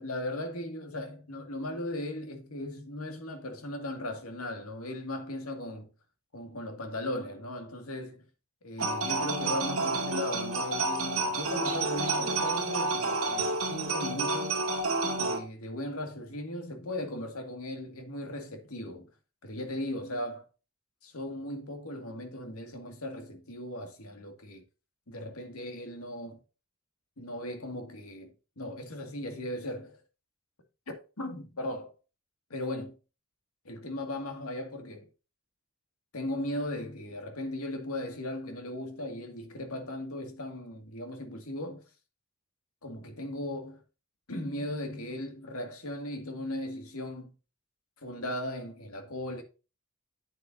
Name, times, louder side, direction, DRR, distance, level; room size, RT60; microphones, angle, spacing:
voice 1, 0.0-5.9 6.3-8.3 8.6-14.6 15.2-19.1 19.4-20.5 21.0-24.6 25.1-26.4 27.2-30.0 30.9-31.9 32.5-32.9 33.6-35.1 36.1-41.8 42.8-43.8 44.3-47.3 48.0-49.4, left 1 dB, 90° left, 2.1 m, -37 dB
sound 1, 8.8-15.4, right 2 dB, 70° right, 2.3 m, -30 dB
9.2 x 7.8 x 2.7 m
head